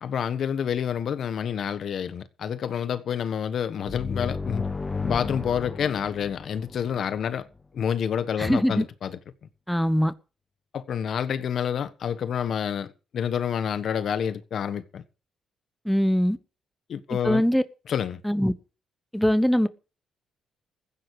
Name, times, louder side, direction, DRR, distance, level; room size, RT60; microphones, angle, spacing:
voice 1, 0.0-4.7 5.0-7.4 7.7-9.2 10.7-12.9 13.1-15.0 16.9-17.4 17.9-18.2, left 8 dB, 60° left, 1.3 m, -28 dB
sound 1, 3.9-7.4, left 4 dB, 25° left, 1.2 m, -33 dB
voice 2, 8.4-8.8 9.7-10.1 15.8-16.4 17.2-17.6 18.2-18.5 19.1-19.7, equal, ahead, 1.1 m, -22 dB
15.0 x 9.9 x 4.9 m
cardioid pair, 90°, 0 cm